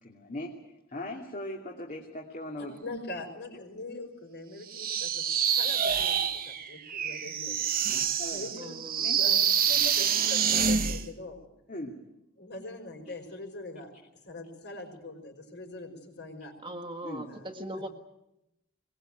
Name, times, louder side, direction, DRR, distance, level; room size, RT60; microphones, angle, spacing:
voice 1, 0.0-2.8 8.2-8.5 9.0-9.2 11.7-11.9 13.1-13.2 17.0-17.3, left 1 dB, 35° left, 0 dB, 2.7 m, -39 dB
voice 2, 2.6-5.2 5.5-7.7 8.3-8.8 9.0-11.4 12.4-13.9 14.3-16.5 17.3-17.4, left 2 dB, 55° left, 4 dB, 5.8 m, -42 dB
sound 1, 4.7-11.0, right 7 dB, 45° right, 1.5 m, -27 dB
voice 3, 8.6-9.1 16.6-17.9, right 1 dB, 25° right, 6 dB, 1.8 m, -39 dB
22.0 x 21.0 x 9.2 m, 0.88 s
head